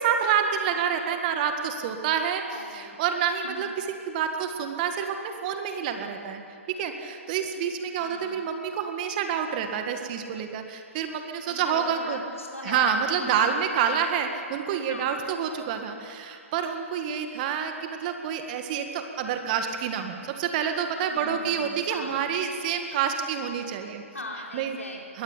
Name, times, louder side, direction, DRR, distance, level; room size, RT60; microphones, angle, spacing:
voice 1, 0.0-6.4 6.7-12.2 12.6-24.0 24.5-24.8 25.1-25.2, right 7 dB, 35° right, 6 dB, 1.9 m, -28 dB
voice 2, 2.5-3.0 3.4-3.7 8.0-8.4 11.5-12.9 13.2-13.4 14.9-15.2 21.1-22.3 24.1-25.2, left 1 dB, 85° left, -1 dB, 4.8 m, -40 dB
21.5 x 17.0 x 9.6 m, 2.4 s
figure-of-eight pair, 125°, 7 cm